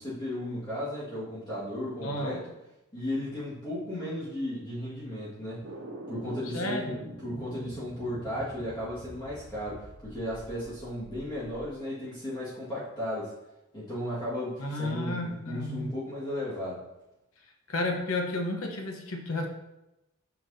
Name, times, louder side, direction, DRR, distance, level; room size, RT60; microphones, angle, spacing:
voice 1, 0.0-2.4 2.9-5.7 6.1-13.3 13.7-16.8, left 1 dB, 20° left, -9 dB, 1.8 m, -35 dB
voice 2, 2.0-2.4 6.5-7.0 14.6-16.0 17.7-19.5, left 2 dB, 90° left, 2 dB, 1.0 m, -32 dB
sound 1, 5.6-11.7, right 1 dB, 70° right, 1.4 m, -45 dB
8.2 x 6.0 x 2.7 m, 0.95 s
head